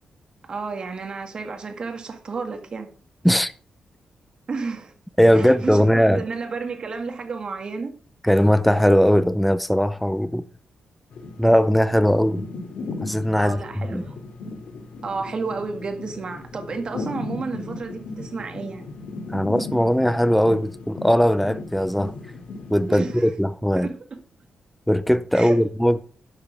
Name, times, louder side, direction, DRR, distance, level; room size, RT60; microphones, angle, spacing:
voice 1, 0.4-2.9 4.5-4.9 5.3-8.0 13.4-14.2 15.0-18.9 22.9-23.3 23.8-24.1 25.3-25.6, right 4 dB, 45° right, 2.1 m, -31 dB
voice 2, 5.2-6.2 8.2-10.4 11.4-12.4 13.0-14.0 19.3-22.1 22.7-23.9 24.9-26.0, equal, ahead, 0.5 m, -19 dB
sound 1, 11.1-23.2, left 3 dB, 85° left, 2.7 m, -36 dB
11.0 x 6.9 x 5.2 m
wide cardioid pair, 115°, 2 cm